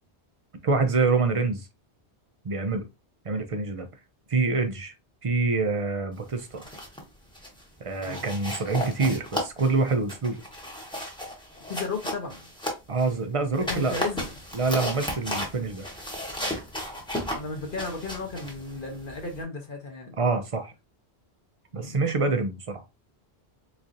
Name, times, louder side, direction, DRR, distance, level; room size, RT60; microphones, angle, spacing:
voice 1, 0.6-1.7 2.4-2.9 3.2-3.9 4.3-4.9 5.2-6.7 7.8-10.4 12.9-14.0 14.5-15.9 20.2-20.7 21.7-22.8, right 3 dB, 40° right, 0.5 m, -26 dB
sound 1, 6.4-7.0 7.3-7.6 8.0-13.1 13.5-19.4, equal, 5° left, 0.9 m, -34 dB
voice 2, 11.7-12.4 13.7-14.3 17.3-20.1 21.7-22.0, left 3 dB, 55° left, 1.0 m, -34 dB
3.8 x 3.1 x 2.5 m
omnidirectional pair, 1.1 m